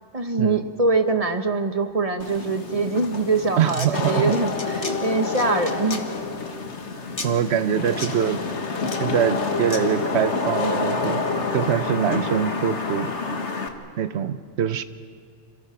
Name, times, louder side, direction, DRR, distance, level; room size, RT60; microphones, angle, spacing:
voice 1, 0.1-6.1, right 3 dB, 30° right, 7 dB, 1.3 m, -23 dB
Wind / Rain, 2.2-13.7, left 4 dB, 65° left, 1.8 m, -28 dB
sound 1, 3.6-3.9 4.3-4.9 5.3-6.0 7.2-7.3 8.0-8.1 8.8-9.0 9.7-9.8, left 3 dB, 30° left, 1.7 m, -33 dB
voice 2, 3.6-4.2 7.2-8.4 9.0-11.2 11.5-13.1 14.0-14.8, right 9 dB, 65° right, 12 dB, 1.1 m, -23 dB
27.5 x 26.5 x 5.8 m, 2.1 s
omnidirectional pair, 1.3 m